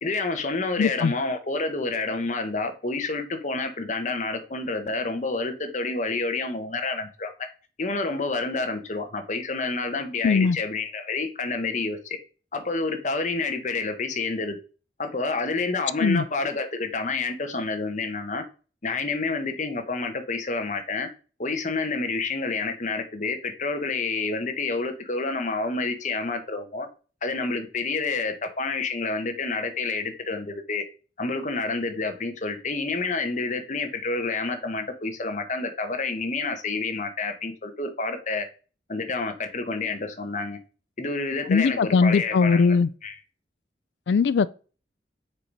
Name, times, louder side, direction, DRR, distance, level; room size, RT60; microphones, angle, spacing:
voice 1, 0.0-7.3 7.8-12.2 12.5-14.6 15.0-18.4 18.8-21.1 21.4-26.9 27.2-30.8 31.2-38.5 38.9-40.6 41.0-42.8 43.0-43.1, left 3 dB, 45° left, 1.0 m, -29 dB
voice 2, 0.8-1.1 10.2-10.6 16.0-16.2 41.5-42.9 44.1-44.5, left 5 dB, 80° left, 0.4 m, -20 dB
6.7 x 4.1 x 4.7 m
head